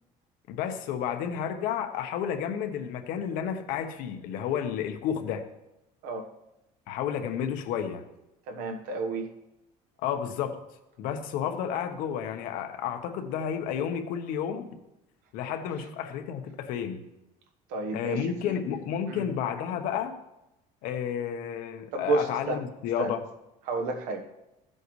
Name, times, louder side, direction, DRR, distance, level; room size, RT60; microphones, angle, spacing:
voice 1, 0.5-5.4 6.9-8.0 10.0-10.6 11.0-14.7 15.3-17.0 17.9-20.2 20.8-23.2, left 8 dB, 75° left, 6 dB, 1.1 m, -31 dB
voice 2, 8.5-9.3 17.7-18.5 19.1-19.3 21.9-22.6 23.0-23.1 23.7-24.3, right 3 dB, 85° right, 5 dB, 1.3 m, -31 dB
14.5 x 7.8 x 3.2 m, 0.92 s
cardioid pair, 165°, 14 cm